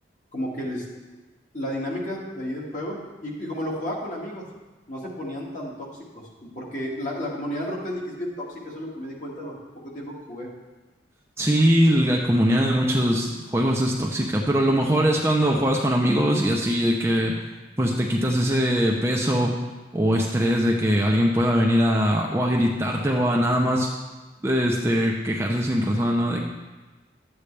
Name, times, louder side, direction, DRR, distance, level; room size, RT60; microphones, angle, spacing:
voice 1, 0.3-0.9 1.5-4.5 4.9-10.5, equal, 40° left, -4 dB, 2.1 m, -32 dB
voice 2, 11.4-17.3 17.8-19.5 19.9-23.9 24.4-26.4, equal, 15° right, -1 dB, 0.7 m, -21 dB
12.5 x 8.5 x 3.3 m, 1.2 s
head